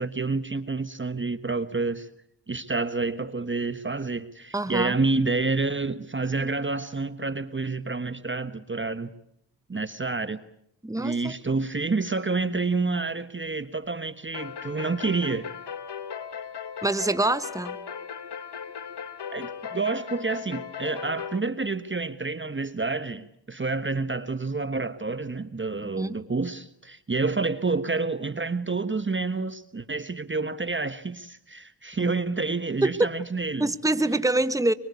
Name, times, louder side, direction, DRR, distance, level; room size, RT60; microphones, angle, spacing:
voice 1, 0.0-2.1 2.5-9.1 9.7-10.4 11.0-15.5 19.3-33.7, right 3 dB, 25° right, 12 dB, 1.3 m, -28 dB
voice 2, 4.5-5.0 10.8-11.3 16.8-17.8 25.8-26.2 32.0-32.1 32.8-33.1 33.6-34.7, right 2 dB, 5° right, 12 dB, 1.4 m, -25 dB
sound 1, 14.3-21.4, left 7 dB, 60° left, 1.8 m, -37 dB
24.5 x 24.5 x 8.4 m, 0.72 s
cardioid pair, 55°, 46 cm